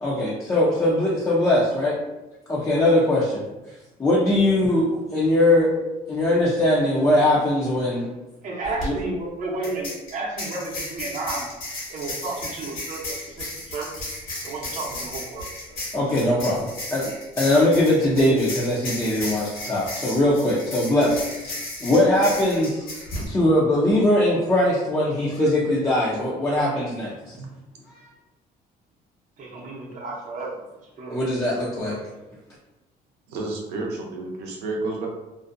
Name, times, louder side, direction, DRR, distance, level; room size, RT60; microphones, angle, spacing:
voice 1, 0.0-2.0 2.5-3.4 4.0-5.7 6.1-8.1 8.8-8.9 15.9-17.0 17.4-21.2 21.8-22.8 23.3-27.4 31.1-32.0, left 1 dB, 15° left, -6 dB, 0.5 m, -21 dB
voice 2, 8.4-11.5 11.9-13.9 14.4-15.8 29.4-30.6 31.0-31.2 31.9-32.0, right 2 dB, 50° right, -3 dB, 0.7 m, -32 dB
sound 1, 8.6-8.9 9.6-23.3, left 1 dB, 60° left, 1.2 m, -34 dB
voice 3, 33.3-35.1, right 2 dB, 85° right, 0 dB, 0.6 m, -30 dB
2.5 x 2.1 x 2.5 m, 1.0 s
cardioid pair, 110°, 17 cm